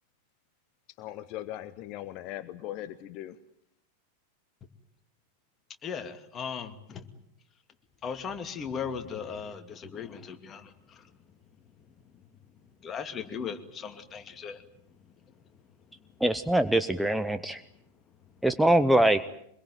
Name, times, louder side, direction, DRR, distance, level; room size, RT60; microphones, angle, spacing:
voice 1, 1.0-3.4, left 13 dB, 40° left, 14 dB, 1.0 m, -39 dB
voice 2, 5.8-7.1 8.0-11.1 12.8-14.6, left 6 dB, 25° left, 7 dB, 2.5 m, -37 dB
voice 3, 16.2-17.6 18.4-19.2, right 1 dB, 5° right, 10 dB, 1.0 m, -23 dB
24.5 x 22.0 x 9.3 m, 0.72 s
figure-of-eight pair, 90°, 0 cm